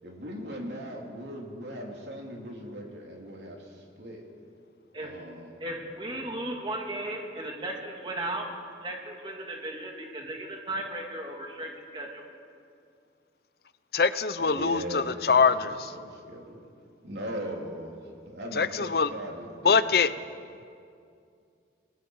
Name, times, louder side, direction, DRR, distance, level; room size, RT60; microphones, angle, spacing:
voice 1, 0.0-4.2 4.9-5.5 14.4-16.6 17.0-19.9, equal, 70° right, 0 dB, 3.3 m, -39 dB
voice 2, 5.6-8.5 8.8-12.3, right 1 dB, 25° right, 0 dB, 2.5 m, -36 dB
voice 3, 13.9-15.9 18.5-19.1 19.6-20.1, left 5 dB, 60° left, 14 dB, 0.6 m, -23 dB
29.0 x 20.0 x 4.8 m, 2.4 s
head